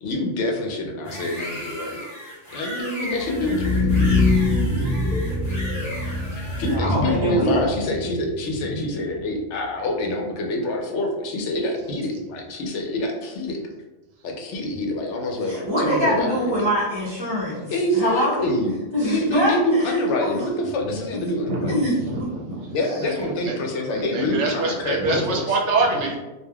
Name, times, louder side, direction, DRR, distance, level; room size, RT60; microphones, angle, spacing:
voice 1, 0.0-2.0 2.5-3.7 6.4-13.6 14.2-16.6 17.7-21.8 22.7-25.4, left 1 dB, 75° left, 1 dB, 0.9 m, -26 dB
sound 1, 1.0-6.7, left 1 dB, 15° left, 0.7 m, -36 dB
sound 2, 3.2-9.2, left 3 dB, 55° left, 0.5 m, -24 dB
sound 3, 4.5-9.1, right 1 dB, 55° right, 1.2 m, -31 dB
voice 2, 6.5-7.7 15.5-18.4 18.9-20.4 21.7-21.9, equal, 25° right, -10 dB, 0.7 m, -24 dB
voice 3, 21.4-23.6 23.9-26.1, right 3 dB, 70° right, -1 dB, 0.9 m, -26 dB
3.2 x 2.4 x 2.2 m, 1.1 s
omnidirectional pair, 1.3 m